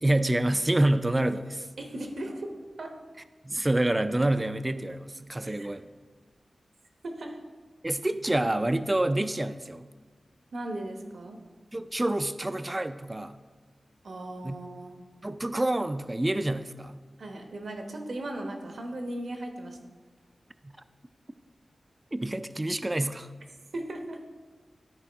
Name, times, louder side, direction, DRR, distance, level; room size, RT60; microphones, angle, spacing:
voice 1, 0.0-1.7 3.4-5.8 7.8-9.9 11.7-13.4 14.4-14.6 15.2-17.0 22.1-23.3, right 1 dB, 20° right, 11 dB, 0.3 m, -27 dB
voice 2, 1.8-2.5 2.8-2.9 5.4-5.7 7.0-7.4 10.5-11.4 14.0-15.0 17.2-19.8 23.7-24.2, right 1 dB, 70° right, 3 dB, 1.0 m, -37 dB
12.5 x 4.6 x 3.4 m, 1.4 s
wide cardioid pair, 85°, 0 cm